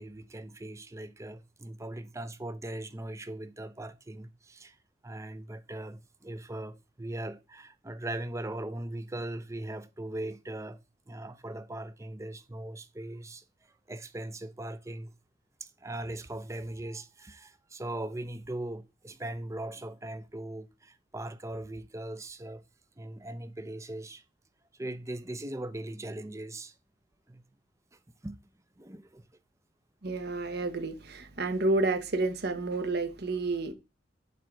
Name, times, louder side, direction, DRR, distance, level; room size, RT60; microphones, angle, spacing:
voice 1, 0.0-4.8 5.0-10.8 11.1-13.4 13.9-15.1 15.6-22.6 23.0-24.2 24.8-26.7 27.3-27.4 28.2-28.4 28.8-29.2, right 1 dB, 15° right, 0.7 m, -39 dB
voice 2, 30.0-33.7, right 2 dB, 60° right, 1.2 m, -30 dB
11.0 x 3.9 x 4.6 m
head